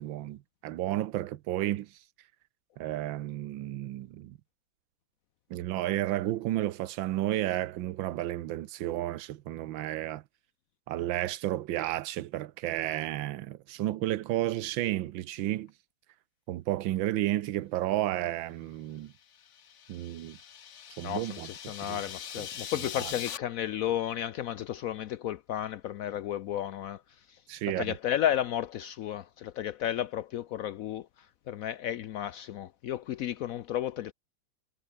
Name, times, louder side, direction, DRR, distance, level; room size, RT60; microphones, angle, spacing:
voice 1, 0.0-1.9 2.8-4.4 5.5-10.2 10.9-15.7 16.5-19.1 19.9-20.4 21.0-22.0 22.4-22.5 23.0-23.1 27.5-27.9, right 14 dB, 80° right, 1.5 m, -32 dB
sound 1, 19.2-23.4, left 8 dB, 50° left, 1.0 m, -42 dB
voice 2, 21.0-27.0 27.3-27.4 27.7-34.1, left 11 dB, 90° left, 0.7 m, -33 dB
omnidirectional pair, 2.1 m